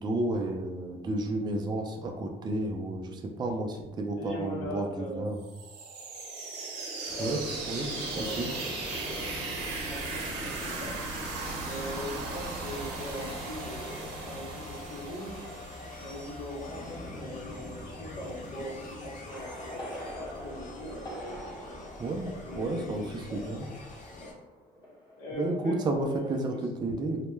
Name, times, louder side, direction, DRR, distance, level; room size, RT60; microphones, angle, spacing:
voice 1, 0.0-5.4 7.2-8.5 22.0-23.7 25.3-27.2, right 2 dB, 25° right, 3 dB, 0.3 m, -32 dB
voice 2, 4.2-5.2 7.1-8.5 8.9-9.3 9.6-11.0 11.6-15.5 16.0-21.9 22.4-23.6 24.1-24.3 25.2-26.4 26.9-27.0, left 1 dB, 80° left, -4 dB, 0.8 m, -41 dB
sound 1, 5.4-17.1, right 3 dB, 85° right, 0.7 m, -37 dB
sound 2, 7.1-24.3, left 2 dB, 50° left, 0.6 m, -45 dB
sound 3, 19.3-25.7 26.0-26.3, equal, 20° left, 0.9 m, -45 dB
2.2 x 2.0 x 3.1 m, 1.1 s
cardioid pair, 110°, 17 cm